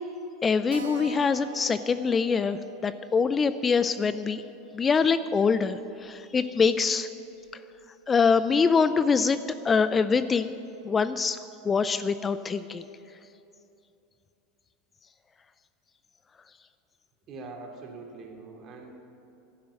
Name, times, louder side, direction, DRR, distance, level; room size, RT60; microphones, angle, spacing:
voice 1, 0.4-4.4 4.7-7.1 8.1-9.4 9.6-10.6 10.8-11.4 11.6-12.8, left 5 dB, 25° left, 13 dB, 0.5 m, -24 dB
Keyboard (musical), 0.7-5.8 6.0-6.1 6.4-6.5 6.8-6.9 7.4-7.8, right 7 dB, 90° right, 1.5 m, -45 dB
voice 2, 17.3-19.1, right 3 dB, 45° right, 1 dB, 3.0 m, -43 dB
12.0 x 9.5 x 9.9 m, 2.8 s
hypercardioid pair, 105°, 0 cm